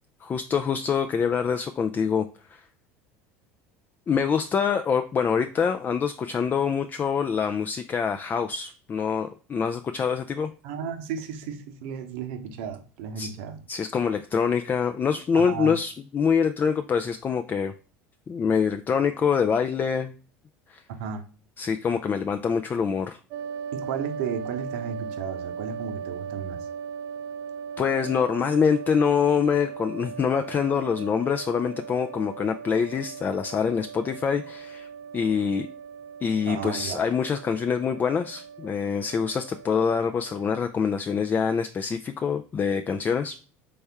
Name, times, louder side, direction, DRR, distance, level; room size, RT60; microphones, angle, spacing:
voice 1, 0.2-2.3 2.5-2.6 4.1-10.5 13.2-13.3 13.7-17.7 18.3-20.1 20.7-20.8 21.6-23.2 27.8-34.9 35.1-35.7 36.2-43.4, left 6 dB, 30° left, 7 dB, 0.3 m, -25 dB
voice 2, 10.6-13.6 15.3-15.8 21.0-21.2 23.7-26.7 36.5-37.0, right 7 dB, 75° right, 6 dB, 0.8 m, -34 dB
sound 1, 23.3-40.6, right 6 dB, 60° right, 0.5 m, -38 dB
4.2 x 3.4 x 3.4 m, 0.38 s
hypercardioid pair, 90°, 7 cm